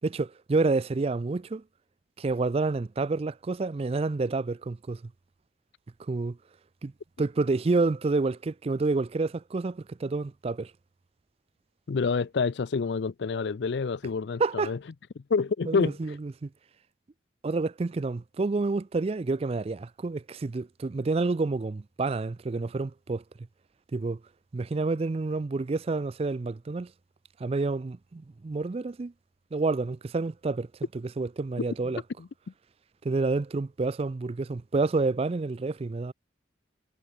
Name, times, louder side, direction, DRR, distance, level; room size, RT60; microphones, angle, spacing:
voice 1, 0.0-1.6 2.2-5.0 6.1-6.4 6.8-6.9 7.2-10.7 14.4-14.7 15.7-16.5 17.4-23.2 23.9-24.2 24.5-26.9 27.4-29.1 29.5-30.7 31.2-32.0 33.0-36.1, right 3 dB, 30° right, 0.4 m, -29 dB
voice 2, 11.9-14.8 15.3-16.2 31.8-32.3, left 5 dB, 65° left, 0.4 m, -28 dB
head